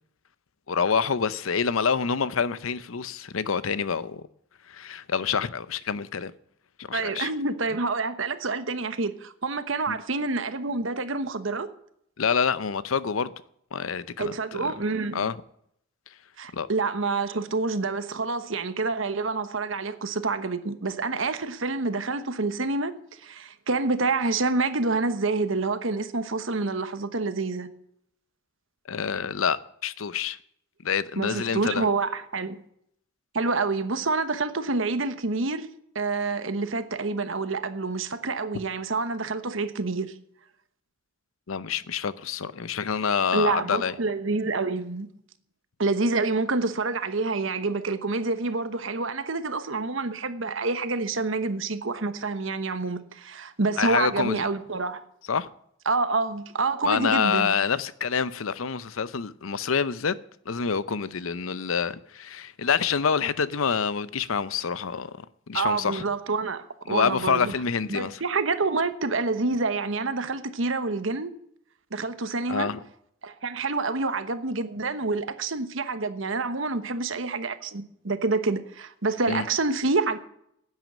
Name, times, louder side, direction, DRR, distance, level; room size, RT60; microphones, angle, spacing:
voice 1, 0.7-4.2 4.7-6.3 6.8-7.3 9.9-10.0 12.2-13.3 13.7-14.7 15.1-15.3 16.5-16.7 28.9-30.4 30.8-31.9 41.5-43.9 53.8-54.5 55.3-55.5 56.8-60.2 60.5-66.0 66.9-68.2 72.5-72.8 79.3-79.4, left 6 dB, 85° left, 0.7 m, -27 dB
voice 2, 6.9-11.7 14.2-15.2 16.4-22.9 23.2-27.7 31.2-32.6 33.3-35.7 35.9-40.1 43.3-45.1 45.8-55.0 55.9-57.5 65.5-67.5 67.9-71.3 71.9-72.7 73.2-80.2, right 3 dB, 70° right, 1.1 m, -27 dB
10.5 x 9.2 x 7.6 m
head